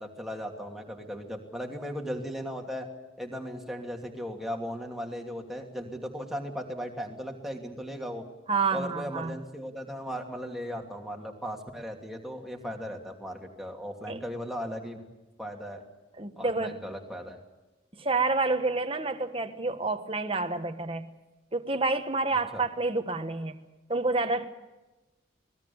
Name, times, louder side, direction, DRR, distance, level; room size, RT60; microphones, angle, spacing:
voice 1, 0.0-2.9 3.2-8.2 8.7-15.1 15.4-15.8 16.4-17.4 22.5-22.6, equal, ahead, 2.7 m, -37 dB
voice 2, 8.5-9.4 14.1-14.2 16.2-16.8 17.9-21.1 21.5-23.6 23.9-24.5, right 3 dB, 25° right, 1.4 m, -28 dB
26.0 x 20.0 x 7.2 m
head